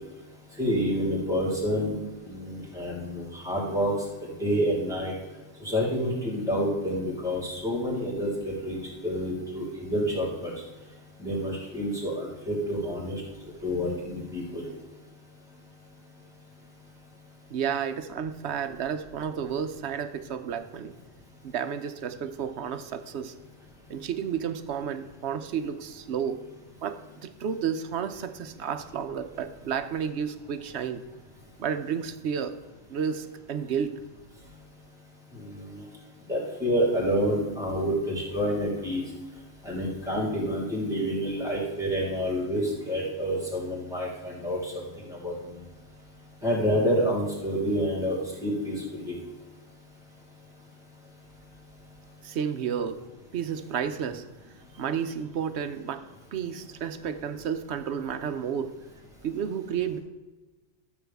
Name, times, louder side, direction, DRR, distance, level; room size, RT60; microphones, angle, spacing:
voice 1, 0.6-1.9 2.3-3.9 4.4-5.1 5.6-8.8 9.0-10.5 11.2-13.2 13.6-14.6 35.4-35.8 36.3-39.0 39.6-44.7 45.1-45.3 46.4-49.2, equal, 5° right, -5 dB, 3.4 m, -28 dB
voice 2, 17.5-21.0 21.4-23.3 23.9-26.4 26.8-31.0 31.6-32.6 32.9-34.0 52.2-53.0 53.3-54.2 54.8-56.0 56.3-58.7 59.2-60.0, right 7 dB, 65° right, 10 dB, 0.9 m, -31 dB
13.0 x 7.2 x 3.5 m, 1.2 s
omnidirectional pair, 1.3 m